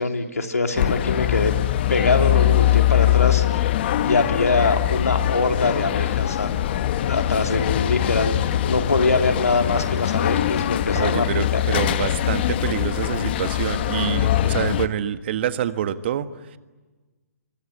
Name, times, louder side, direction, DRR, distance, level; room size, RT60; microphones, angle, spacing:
voice 1, 0.0-1.5 1.9-3.7 4.0-6.5 7.1-11.6, left 3 dB, 80° left, 5 dB, 3.2 m, -23 dB
sound 1, 0.8-14.9, left 12 dB, 40° left, 1.2 m, -22 dB
voice 2, 10.9-16.6, right 10 dB, 45° right, 11 dB, 1.6 m, -27 dB
26.0 x 24.0 x 9.6 m, 1.2 s
figure-of-eight pair, 135°, 8 cm